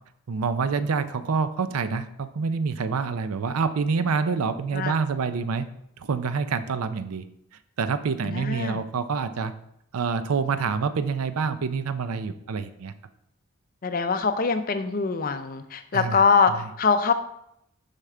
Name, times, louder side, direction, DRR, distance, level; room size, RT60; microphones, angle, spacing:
voice 1, 0.3-5.6 6.0-7.2 7.8-9.5 9.9-12.9 15.9-16.2, right 5 dB, 90° right, 12 dB, 0.5 m, -27 dB
voice 2, 8.2-8.8 13.8-17.1, left 5 dB, 40° left, 9 dB, 0.5 m, -23 dB
6.5 x 5.8 x 3.7 m, 0.75 s
head